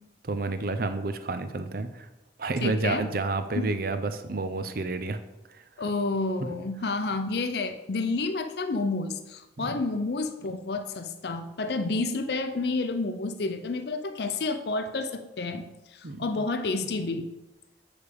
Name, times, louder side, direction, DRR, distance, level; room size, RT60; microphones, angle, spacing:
voice 1, 0.2-2.1 2.4-5.2 5.5-5.6 6.4-6.5 9.6-9.8 16.0-16.2, right 3 dB, 50° right, 10 dB, 0.6 m, -30 dB
voice 2, 2.6-3.0 3.5-3.7 5.8-15.6 15.9-17.3, left 3 dB, 60° left, 8 dB, 0.6 m, -30 dB
6.8 x 4.7 x 6.9 m, 1.0 s
head